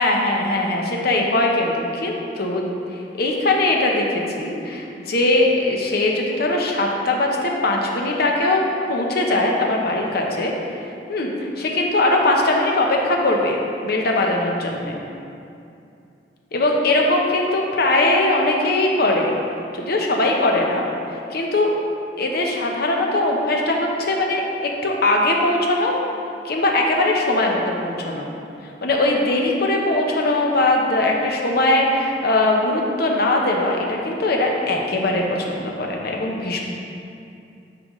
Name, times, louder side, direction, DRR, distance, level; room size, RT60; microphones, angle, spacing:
voice 1, 0.0-2.7 3.2-8.6 8.9-10.5 11.1-11.3 11.6-15.0 16.5-19.3 19.7-21.7 22.2-25.9 26.4-28.3 28.8-36.6, left 2 dB, 60° left, 0 dB, 0.8 m, -20 dB
9.8 x 3.9 x 3.1 m, 2.6 s
head